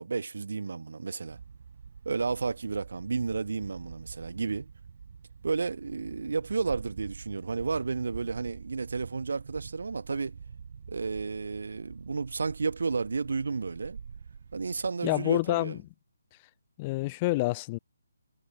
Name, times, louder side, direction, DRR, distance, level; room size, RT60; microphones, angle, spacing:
voice 1, 0.0-1.4 2.0-4.7 5.4-10.4 10.9-14.0 14.5-15.8, right 4 dB, 70° right, 1.0 m, -32 dB
sound 1, 1.3-14.9, right 6 dB, 50° right, 2.9 m, -46 dB
voice 2, 15.0-15.8 16.8-17.8, left 21 dB, 20° left, 1.4 m, -28 dB
hypercardioid pair, 165°, 0 cm